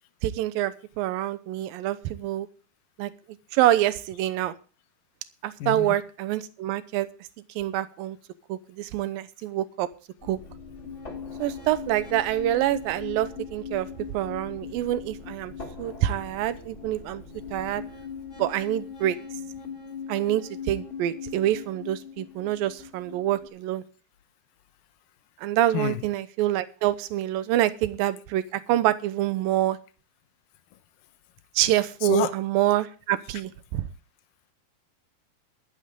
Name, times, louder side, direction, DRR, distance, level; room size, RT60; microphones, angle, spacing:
voice 1, 0.2-2.5 3.0-3.1 3.5-4.6 5.4-7.1 7.6-8.2 8.5-9.9 10.3-10.4 11.4-15.5 15.8-17.2 17.5-17.8 18.4-19.2 20.1-23.8 25.4-29.8 31.6-33.9, right 13 dB, 75° right, 2.5 m, -26 dB
voice 2, 5.6-6.0 25.7-26.1 31.6-31.7 32.0-32.4 33.3-33.4, left 12 dB, 70° left, 2.5 m, -30 dB
sound 1, 10.2-23.5, left 6 dB, 20° left, 2.6 m, -40 dB
14.5 x 12.5 x 3.7 m
omnidirectional pair, 4.5 m